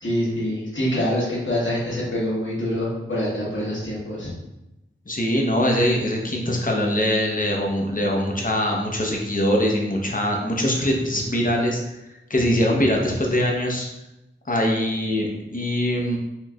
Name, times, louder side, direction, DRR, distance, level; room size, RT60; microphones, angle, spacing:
voice 1, 0.0-4.3, left 1 dB, 65° left, -6 dB, 1.4 m, -25 dB
voice 2, 5.1-11.8 12.3-13.9 14.5-16.2, equal, 40° left, -1 dB, 0.8 m, -22 dB
4.5 x 3.0 x 2.3 m, 0.93 s
wide cardioid pair, 45°, 21 cm